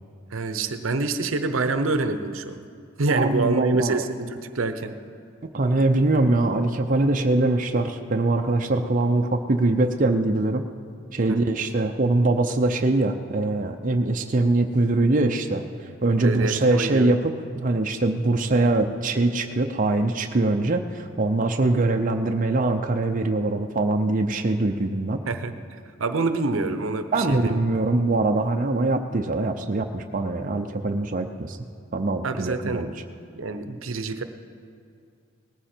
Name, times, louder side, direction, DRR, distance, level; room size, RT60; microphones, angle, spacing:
voice 1, 0.3-2.7 3.0-5.0 11.3-11.4 16.2-17.2 25.3-25.5 26.0-27.6 32.2-32.8 33.3-34.2, right 3 dB, 80° right, 9 dB, 0.8 m, -26 dB
voice 2, 3.1-4.0 5.5-10.7 11.1-25.2 27.1-31.6 31.9-32.9, right 2 dB, 40° right, 4 dB, 0.6 m, -23 dB
19.0 x 14.0 x 4.4 m, 2.4 s
head